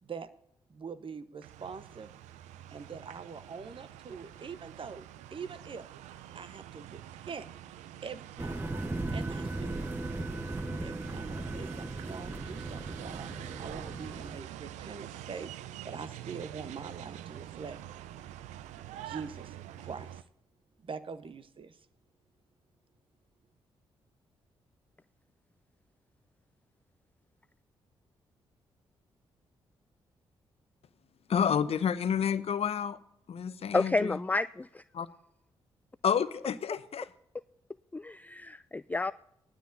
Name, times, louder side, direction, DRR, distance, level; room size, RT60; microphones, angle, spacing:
voice 1, 0.7-2.1 2.7-5.9 6.3-7.5 8.0-8.7 9.1-9.9 10.8-15.5 15.8-17.8 19.0-20.2 20.8-21.8, right 5 dB, 45° right, 1.0 m, -44 dB
sound 1, 1.4-20.2, right 12 dB, 80° right, 0.5 m, -46 dB
sound 2, 8.4-14.4, right 2 dB, 20° right, 0.9 m, -37 dB
voice 2, 31.3-33.0 33.3-34.2 34.9-35.1 36.0-37.1, left 7 dB, 55° left, 0.8 m, -29 dB
voice 3, 33.7-34.8 37.9-39.1, left 3 dB, 15° left, 0.3 m, -30 dB
18.0 x 12.5 x 2.6 m
hypercardioid pair, 40°, 12 cm